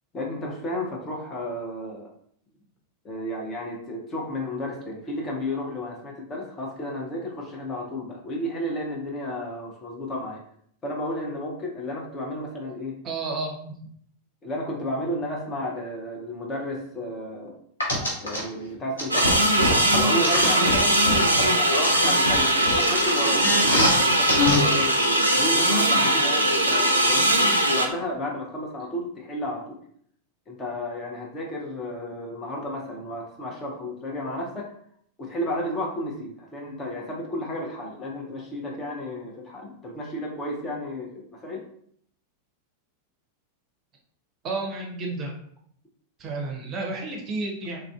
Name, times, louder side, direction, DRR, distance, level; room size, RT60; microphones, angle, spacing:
voice 1, 0.1-2.1 3.0-10.4 10.8-13.0 14.4-17.5 18.2-19.5 19.9-24.9 25.2-29.8 30.5-34.7 35.2-41.6, left 1 dB, 25° left, -1 dB, 0.7 m, -32 dB
voice 2, 13.0-13.7 44.4-45.3 46.2-47.8, right 3 dB, 30° right, 1 dB, 0.6 m, -31 dB
sound 1, 17.8-18.4 19.0-21.4 21.8-24.0 24.3-24.6 25.0-25.1, left 1 dB, 75° left, 0.9 m, -24 dB
sound 2, 19.1-27.9, right 1 dB, 85° right, 0.3 m, -21 dB
3.2 x 2.4 x 2.3 m, 0.65 s
figure-of-eight pair, 90°, 0 cm